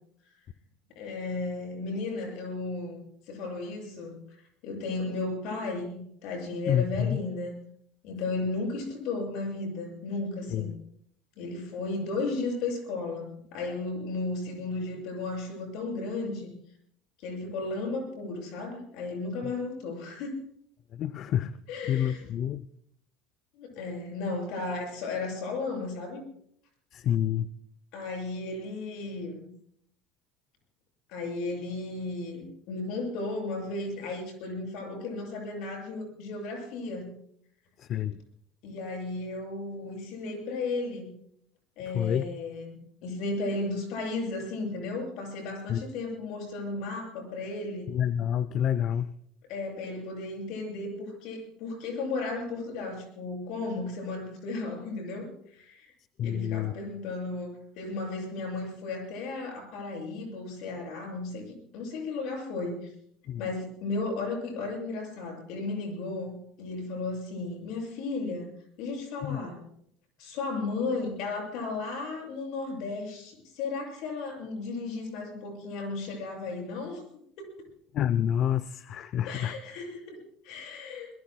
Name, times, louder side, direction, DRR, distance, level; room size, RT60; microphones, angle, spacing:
voice 1, 0.9-4.4 4.6-7.5 8.0-10.7 11.4-16.5 17.2-20.4 21.7-22.2 23.5-26.2 27.9-29.5 31.1-37.1 38.6-41.1 41.8-47.9 49.5-55.9 56.2-62.9 63.4-68.5 68.8-69.6 70.2-77.0 77.4-77.7 79.2-81.1, left 3 dB, 70° left, 2 dB, 7.4 m, -34 dB
voice 2, 6.7-7.2 10.5-10.7 19.4-19.5 20.9-21.6 21.9-22.7 26.9-27.5 37.8-38.2 41.9-42.3 45.7-45.8 47.9-49.1 56.2-56.7 63.3-63.4 69.2-69.4 77.9-79.6, left 10 dB, 50° left, 16 dB, 0.5 m, -28 dB
24.0 x 21.5 x 2.3 m, 0.67 s
supercardioid pair, 105°, 0 cm